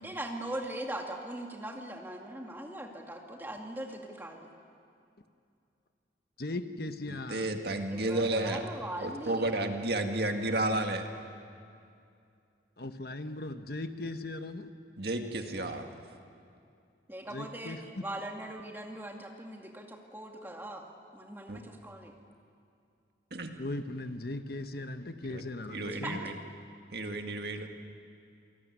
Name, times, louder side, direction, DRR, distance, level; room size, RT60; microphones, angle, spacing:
voice 1, 0.0-4.5 7.9-9.5 17.1-20.8 21.1-22.1 25.9-26.1, right 1 dB, 10° right, 1 dB, 2.3 m, -40 dB
voice 2, 6.4-7.5 12.8-14.7 17.3-17.8 23.6-26.2, left 2 dB, 55° left, 8 dB, 1.1 m, -38 dB
voice 3, 7.1-8.7 9.0-11.1 15.0-15.9 21.5-21.6 23.3-23.5 25.3-25.4 25.7-26.4 26.9-27.7, right 2 dB, 55° right, 4 dB, 1.9 m, -32 dB
28.0 x 19.0 x 9.5 m, 2.5 s
head